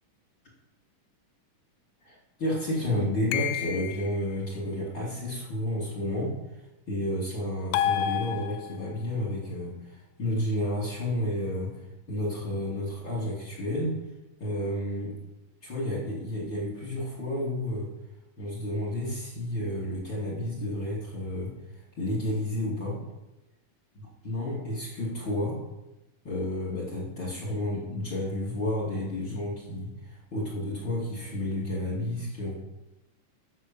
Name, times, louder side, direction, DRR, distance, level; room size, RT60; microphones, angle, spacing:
voice 1, 2.0-6.3 6.9-11.7 12.1-14.0 14.4-15.1 15.6-17.9 18.4-21.5 22.0-23.0 24.2-25.6 26.2-32.5, left 1 dB, 35° left, -5 dB, 3.0 m, -31 dB
sound 1, 3.3-4.2 7.7-9.0, left 10 dB, 80° left, 2.0 m, -29 dB
9.6 x 7.2 x 7.0 m, 0.97 s
omnidirectional pair, 3.8 m